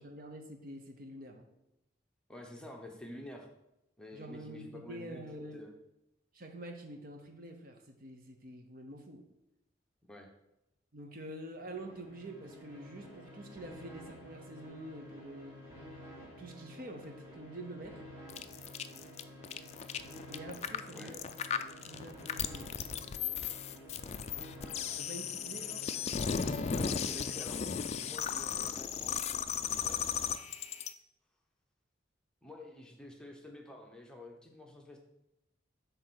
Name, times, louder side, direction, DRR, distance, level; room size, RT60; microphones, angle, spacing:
voice 1, 0.0-1.4 4.1-5.6 6.3-9.3 10.9-15.6 16.4-18.0 20.3-21.2 21.8-22.7 25.0-25.8, right 1 dB, 45° right, 4 dB, 0.8 m, -47 dB
voice 2, 2.3-3.5 4.0-5.2 5.5-5.7 10.1-10.3 20.9-21.2 26.7-27.7 28.0-29.2 29.8-30.0 32.4-35.0, left 1 dB, 5° left, 0 dB, 0.9 m, -48 dB
sound 1, 11.5-28.3, equal, 15° right, 1.8 m, -51 dB
sound 2, 18.3-30.9, left 7 dB, 35° left, 0.3 m, -36 dB
8.5 x 3.4 x 6.2 m, 0.88 s
head